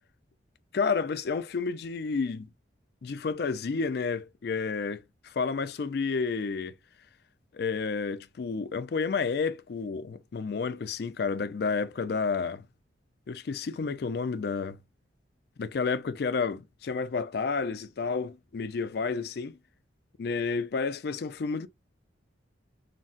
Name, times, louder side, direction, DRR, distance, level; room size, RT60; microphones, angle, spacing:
voice 1, 0.7-2.5 3.0-6.7 7.5-12.7 13.3-14.8 15.6-19.6 20.2-21.7, left 5 dB, 55° left, 0.4 m, -30 dB
3.9 x 2.1 x 2.4 m
head